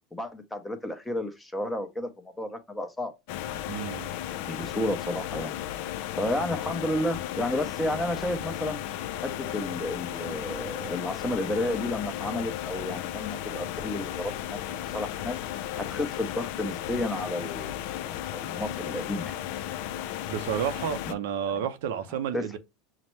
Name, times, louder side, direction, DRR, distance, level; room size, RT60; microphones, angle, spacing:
voice 1, 0.1-3.1 4.5-5.5 6.2-8.8 9.2-15.4 15.9-19.4 21.0-21.1 22.3-22.4, left 1 dB, 5° left, 0.7 m, -32 dB
sound 1, 3.3-21.1, left 12 dB, 65° left, 0.3 m, -35 dB
voice 2, 3.7-4.1 20.3-22.6, right 9 dB, 80° right, 0.5 m, -31 dB
5.7 x 2.1 x 3.1 m
supercardioid pair, 135°, 0 cm